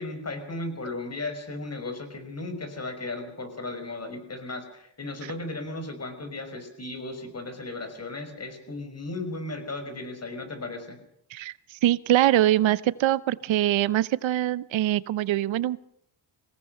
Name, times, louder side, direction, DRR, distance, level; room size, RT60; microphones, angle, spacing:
voice 1, 0.0-11.0, left 2 dB, 35° left, 8 dB, 6.1 m, -35 dB
voice 2, 11.3-15.8, right 13 dB, 90° right, 18 dB, 0.9 m, -23 dB
24.5 x 18.0 x 6.6 m, 0.72 s
cardioid pair, 85°, 45 cm